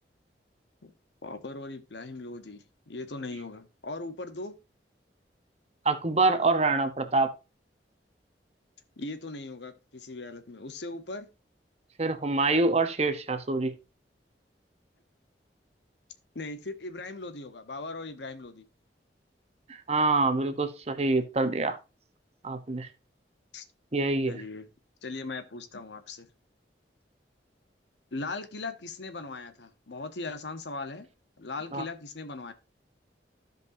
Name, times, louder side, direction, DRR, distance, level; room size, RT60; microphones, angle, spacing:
voice 1, 1.2-4.6 9.0-11.3 16.3-18.6 23.5-23.6 24.2-24.7 25.0-26.3 28.1-31.1 31.4-32.5, left 3 dB, 80° left, 1.0 m, -39 dB
voice 2, 5.8-7.3 12.0-13.7 19.7-21.8 22.4-22.9 23.9-24.4 31.7-31.8, right 3 dB, 35° right, 0.9 m, -26 dB
15.0 x 5.3 x 2.7 m
head